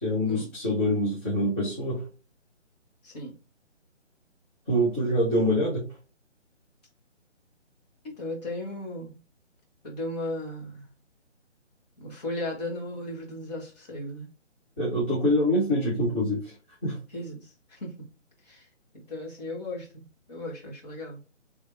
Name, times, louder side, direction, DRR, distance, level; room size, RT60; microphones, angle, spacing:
voice 1, 0.0-2.0 4.7-5.8 14.8-16.5 16.8-17.0, equal, 10° left, -11 dB, 0.7 m, -25 dB
voice 2, 3.0-3.3 8.0-9.2 9.8-10.9 12.0-14.3 17.1-17.9 18.4-18.7 19.1-20.0 20.3-21.2, left 1 dB, 35° left, -3 dB, 1.5 m, -36 dB
3.5 x 3.3 x 2.6 m, 0.33 s
figure-of-eight pair, 145°, 37 cm